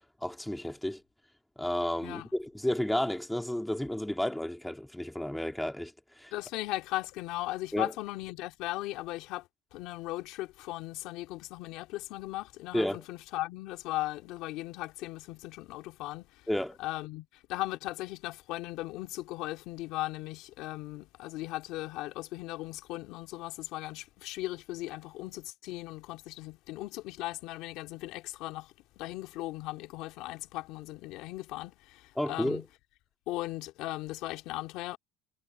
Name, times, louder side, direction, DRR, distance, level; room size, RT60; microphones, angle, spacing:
voice 1, 0.2-1.0 1.6-5.9 6.2-6.3 7.7-7.9 12.7-13.0 16.5-16.8 32.2-32.6, left 1 dB, 5° left, 2.7 m, -32 dB
voice 2, 6.3-16.5 16.8-32.6 33.3-35.0, left 18 dB, 70° left, 2.3 m, -38 dB
supercardioid pair, 115°, 0 cm